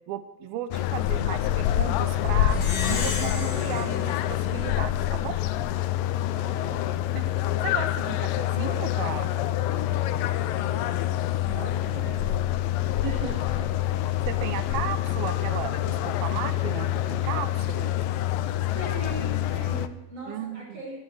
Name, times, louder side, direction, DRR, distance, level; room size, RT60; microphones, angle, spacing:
voice 1, 0.1-2.6 2.9-5.4 7.1-9.4 11.6-12.1 13.0-13.1 14.3-17.9 20.3-20.8, right 10 dB, 90° right, 11 dB, 2.9 m, -35 dB
sound 1, 0.7-19.9, left 12 dB, 80° left, 2.4 m, -26 dB
Plucked string instrument, 2.5-5.3, left 5 dB, 50° left, 2.7 m, -34 dB
voice 2, 6.4-6.9 10.5-12.4 13.0-14.0 18.7-21.0, right 1 dB, 30° right, -2 dB, 6.7 m, -40 dB
16.0 x 13.0 x 6.5 m, 1.0 s
omnidirectional pair, 4.2 m